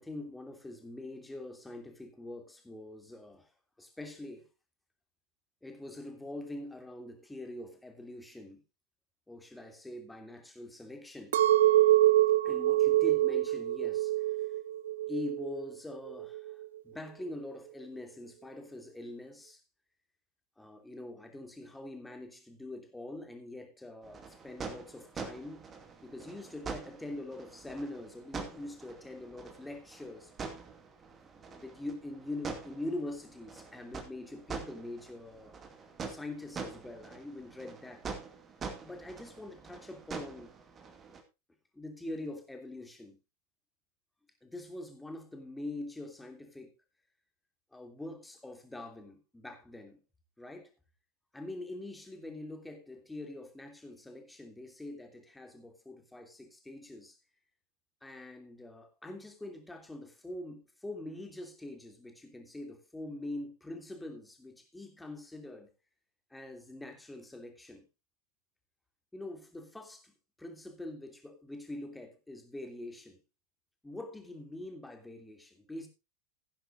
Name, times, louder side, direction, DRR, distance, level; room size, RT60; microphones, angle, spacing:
voice 1, 0.0-3.5 3.8-4.5 5.6-8.6 9.3-11.4 12.4-14.5 15.1-16.6 16.8-19.6 20.6-25.6 26.0-30.3 31.1-35.5 36.1-38.1 38.8-40.5 41.1-41.2 41.7-43.2 44.4-46.7 47.7-50.0 50.4-50.7 51.3-57.2 58.0-65.7 66.3-67.8 69.1-73.2 73.8-75.9, left 2 dB, 5° left, 2.9 m, -44 dB
Chink clink, 11.3-15.6 16.1-16.6, right 14 dB, 60° right, 0.6 m, -25 dB
sound 1, 24.0-41.2, right 5 dB, 20° right, 2.4 m, -45 dB
16.5 x 10.0 x 2.6 m
figure-of-eight pair, 90°, 0 cm